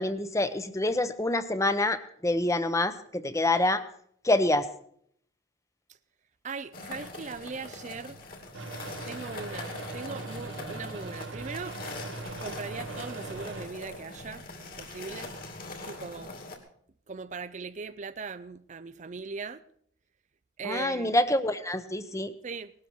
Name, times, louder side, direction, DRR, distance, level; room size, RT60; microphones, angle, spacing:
voice 1, 0.0-3.8 4.2-4.7 20.6-22.3, left 2 dB, 15° left, 0.8 m, -26 dB
voice 2, 6.4-8.2 9.1-11.8 12.4-14.4 14.8-15.3 15.9-16.4 17.1-19.6 20.6-21.2 22.4-22.7, right 4 dB, 40° right, 0.5 m, -39 dB
sound 1, 6.7-16.6, left 2 dB, 50° left, 2.6 m, -42 dB
sound 2, 8.5-13.7, right 3 dB, 80° right, 1.0 m, -41 dB
19.0 x 12.5 x 4.5 m
head